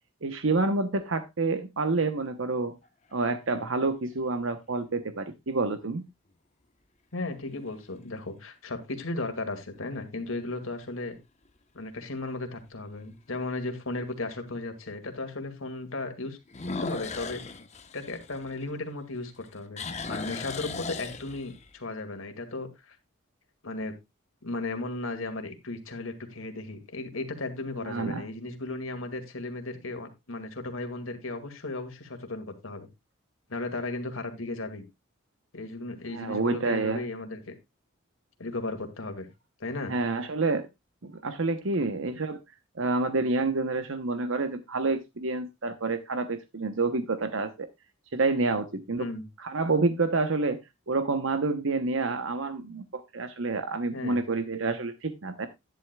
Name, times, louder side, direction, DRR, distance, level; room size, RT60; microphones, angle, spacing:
voice 1, 0.2-2.7 3.1-6.0 27.8-28.2 36.1-37.0 39.9-40.7 41.0-42.4 42.8-47.7 48.1-49.1 49.4-50.6 50.9-55.5, right 3 dB, 70° right, 0.9 m, -28 dB
sound 1, 2.8-3.5 4.2-4.3 9.5-10.0 10.4-10.5 11.1-11.2 11.4-11.5 13.1-13.2 16.5-19.0 19.3-21.7, left 4 dB, 35° left, 1.0 m, -37 dB
voice 2, 7.1-11.1 11.7-16.4 16.7-17.4 17.9-23.0 23.6-23.9 24.4-32.9 33.5-34.8 35.5-37.5 38.4-39.3 39.6-39.9 49.0-49.2 53.9-54.2, left 2 dB, 75° left, 2.1 m, -35 dB
11.0 x 10.5 x 2.3 m
head